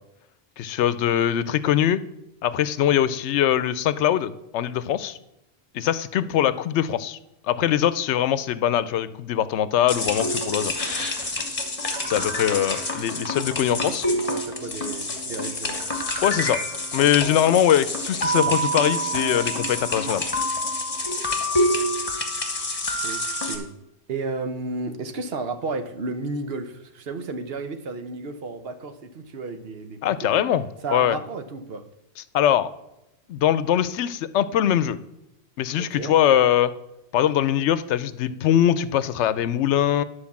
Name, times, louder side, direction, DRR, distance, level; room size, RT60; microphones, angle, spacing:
voice 1, 0.6-2.0 2.4-5.2 5.7-7.2 7.4-10.7 12.0-14.1 16.2-16.6 16.9-20.2 30.0-31.2 32.3-32.7 33.3-35.0 35.6-36.7 37.1-40.0, left 10 dB, 90° left, 15 dB, 0.9 m, -22 dB
sound 1, 9.9-23.6, left 1 dB, 35° left, 1.3 m, -27 dB
voice 2, 13.6-15.8 23.0-23.7 24.1-30.4 30.8-31.8 35.8-36.2, right 3 dB, 60° right, 9 dB, 1.0 m, -33 dB
10.5 x 4.8 x 7.1 m, 0.87 s
omnidirectional pair, 1.1 m